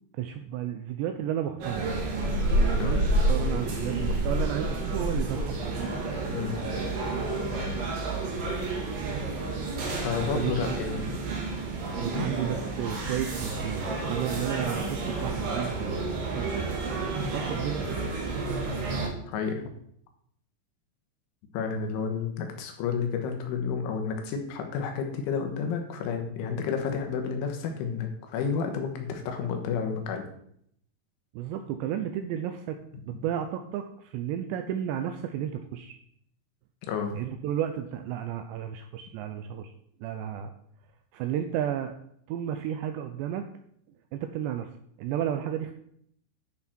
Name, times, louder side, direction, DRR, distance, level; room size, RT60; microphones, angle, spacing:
voice 1, 0.2-2.0 2.6-5.8 10.2-10.8 12.0-16.8 17.2-17.8 31.4-32.8 33.1-36.0 37.2-39.7 40.0-40.5 41.1-41.9 42.3-43.4 44.1-44.7 45.0-45.8, right 10 dB, 85° right, 7 dB, 2.5 m, -32 dB
sound 1, 1.6-19.1, right 2 dB, 55° right, 2.8 m, -29 dB
voice 2, 9.9-11.2 12.1-12.3 19.3-19.6 21.5-30.2 36.9-37.1, left 6 dB, 80° left, 4 dB, 3.7 m, -31 dB
11.0 x 6.1 x 4.4 m, 0.69 s
omnidirectional pair, 5.6 m